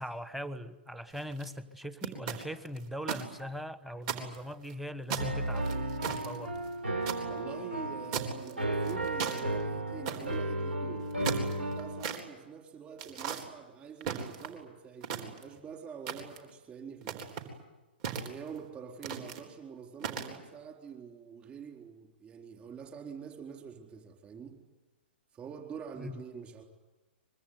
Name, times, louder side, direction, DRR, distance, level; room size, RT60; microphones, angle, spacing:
voice 1, 0.0-6.5 26.0-26.2, equal, 5° right, 1.2 m, -40 dB
sound 1, 1.1-1.5 2.0-3.2 3.6-3.7 4.0-4.7 5.1-7.2 8.1-8.5 8.9-9.4 10.1-10.4 11.0-12.2 13.0-13.4 14.0-14.6 15.0-15.6 16.1-16.5 17.0-17.5 18.0-18.6 19.0-19.4 20.0-20.4, right 7 dB, 40° right, 4.0 m, -37 dB
Piano, 5.2-12.0, right 1 dB, 80° right, 3.6 m, -34 dB
voice 2, 7.3-17.3 18.1-24.6 25.3-26.6, right 7 dB, 20° right, 4.1 m, -46 dB
24.5 x 23.0 x 9.6 m
figure-of-eight pair, 120°, 6 cm